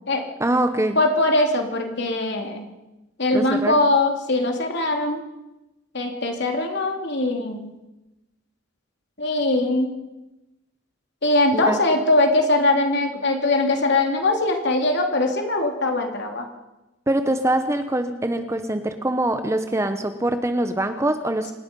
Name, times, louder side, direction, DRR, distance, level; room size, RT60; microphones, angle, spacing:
voice 1, 0.4-1.0 3.3-3.7 11.5-11.8 17.1-21.5, right 1 dB, 15° right, 8 dB, 0.9 m, -23 dB
voice 2, 0.9-2.7 3.2-5.2 5.9-7.7 9.2-9.9 11.2-16.5, left 2 dB, 55° left, 3 dB, 3.3 m, -21 dB
28.5 x 18.5 x 5.5 m, 0.98 s
head